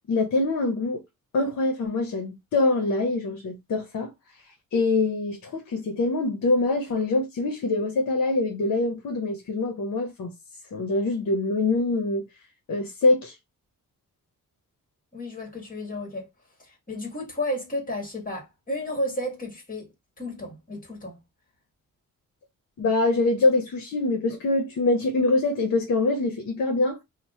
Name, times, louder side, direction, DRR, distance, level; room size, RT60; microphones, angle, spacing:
voice 1, 0.1-1.0 1.3-4.1 4.7-10.3 10.7-12.2 12.7-13.4 22.8-27.0, left 2 dB, 60° left, 0.8 m, -24 dB
voice 2, 15.1-16.3 16.6-21.2, left 1 dB, 25° left, 1.6 m, -32 dB
2.9 x 2.1 x 4.1 m
cardioid pair, 105°, 33 cm